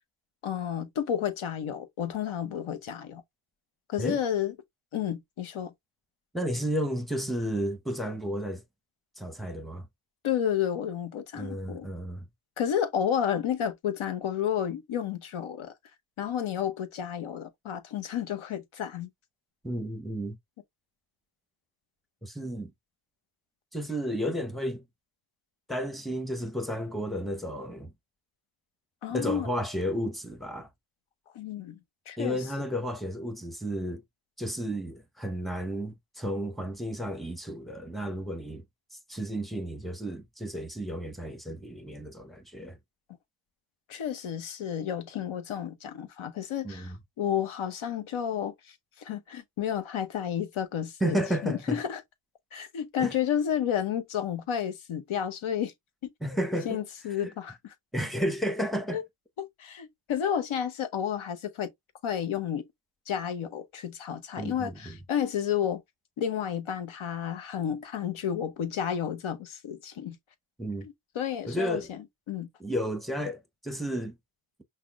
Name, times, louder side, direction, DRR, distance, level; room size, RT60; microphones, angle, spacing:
voice 1, 0.4-3.2 3.9-4.5 4.9-5.7 10.2-11.9 12.6-15.7 16.2-19.1 29.0-29.5 31.3-31.8 32.1-32.4 43.9-52.0 52.5-55.7 56.0-56.1 56.6-57.7 58.9-59.0 59.4-61.7 62.0-62.7 63.1-65.8 66.2-70.2 70.8-72.5, left 9 dB, 70° left, 1.0 m, -31 dB
voice 2, 6.3-8.6 9.2-9.9 11.4-12.2 19.6-20.4 22.2-22.7 23.7-24.8 25.7-27.9 29.1-30.7 32.2-34.0 34.4-38.6 39.1-42.8 46.6-47.0 51.0-51.8 53.0-53.1 56.2-56.8 57.2-57.3 57.9-59.0 64.4-64.9 70.6-70.9 71.4-71.9 72.6-74.2, equal, ahead, 0.8 m, -32 dB
5.7 x 2.1 x 2.4 m
cardioid pair, 90°, 50 cm